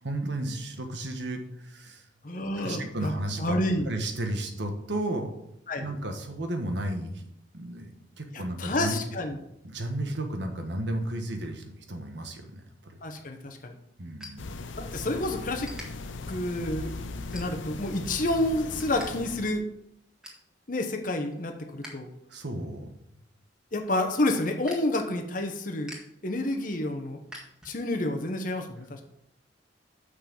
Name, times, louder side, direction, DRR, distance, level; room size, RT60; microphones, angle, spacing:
voice 1, 0.0-2.0 2.6-5.3 5.8-7.3 7.5-9.0 9.6-13.0 14.0-14.5 22.3-22.9, right 1 dB, 65° right, 5 dB, 1.4 m, -33 dB
voice 2, 2.2-3.1 3.4-3.9 5.7-5.8 8.6-9.4 13.0-13.7 14.8-15.7 16.3-16.9 17.3-19.7 20.7-22.1 23.7-26.0 26.2-27.2 27.6-29.0, left 1 dB, 45° left, 4 dB, 1.0 m, -29 dB
sound 1, 14.2-15.1 15.4-15.9 16.4-16.7 17.2-17.9 18.3-19.1 19.4-19.5 19.8-20.5 20.9-21.9 22.3-28.1, equal, 5° right, 1.9 m, -48 dB
sound 2, 14.4-19.6, left 3 dB, 85° left, 0.7 m, -38 dB
6.6 x 5.9 x 7.1 m, 0.79 s
head